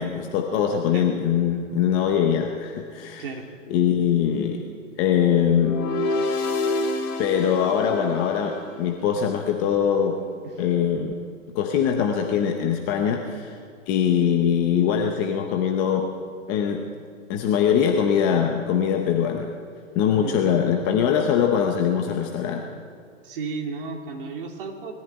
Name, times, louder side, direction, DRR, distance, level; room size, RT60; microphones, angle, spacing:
voice 1, 0.0-3.3 3.7-4.6 5.0-5.8 7.2-10.2 10.6-11.1 11.5-13.6 13.9-16.1 16.5-16.8 17.3-19.5 20.0-22.7, left 8 dB, 15° left, 3 dB, 0.7 m, -22 dB
sound 1, 5.6-8.8, left 2 dB, 30° left, 2.9 m, -27 dB
voice 2, 23.2-24.9, right 4 dB, 45° right, 2 dB, 3.2 m, -33 dB
20.5 x 14.5 x 9.5 m, 2.2 s
hypercardioid pair, 150°, 39 cm